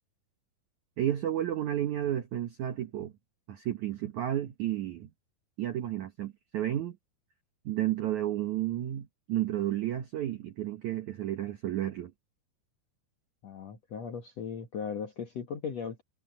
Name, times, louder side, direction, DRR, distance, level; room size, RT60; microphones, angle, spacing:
voice 1, 1.0-3.1 3.5-5.1 5.6-7.0 7.7-12.1, right 12 dB, 75° right, 1.8 m, -32 dB
voice 2, 13.4-16.0, left 6 dB, 60° left, 1.8 m, -37 dB
omnidirectional pair, 5.1 m